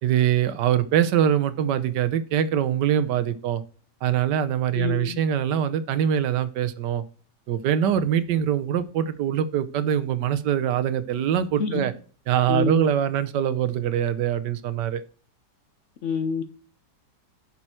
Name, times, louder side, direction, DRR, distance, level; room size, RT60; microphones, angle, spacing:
voice 1, 0.0-3.6 4.0-7.0 7.5-11.9 12.3-15.0, right 9 dB, 80° right, 1.4 m, -23 dB
voice 2, 4.7-5.2 11.6-11.9 12.5-12.8 16.0-16.4, left 5 dB, 60° left, 0.9 m, -27 dB
10.5 x 5.6 x 4.3 m
omnidirectional pair, 1.8 m